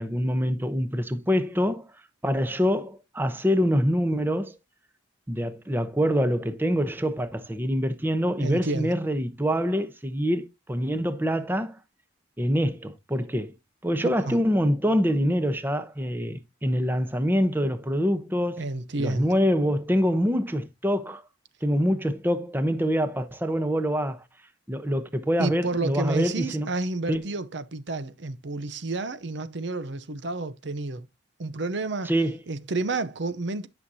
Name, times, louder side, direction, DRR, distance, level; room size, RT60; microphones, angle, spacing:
voice 1, 0.0-1.9 2.2-4.5 5.3-11.8 12.4-13.5 13.8-18.6 19.0-21.2 21.6-24.2 24.7-26.7 27.1-27.2 32.0-32.4, equal, 10° right, 0.8 m, -25 dB
voice 2, 8.4-8.9 14.2-14.4 18.6-19.3 25.4-31.1 31.4-32.1 32.5-33.7, right 3 dB, 60° right, 0.7 m, -30 dB
11.5 x 6.2 x 2.7 m
head